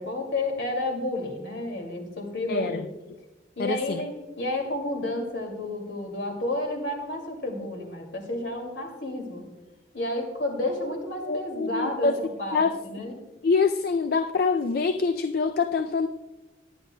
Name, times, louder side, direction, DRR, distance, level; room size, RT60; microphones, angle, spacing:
voice 1, 0.0-2.9 3.6-9.5 9.9-13.1, left 1 dB, 70° left, 3 dB, 2.3 m, -31 dB
voice 2, 2.5-2.8 3.6-4.0 11.3-12.2 12.5-12.7 13.4-16.1, left 4 dB, 50° left, 8 dB, 0.4 m, -25 dB
20.5 x 9.5 x 2.2 m, 1.1 s
head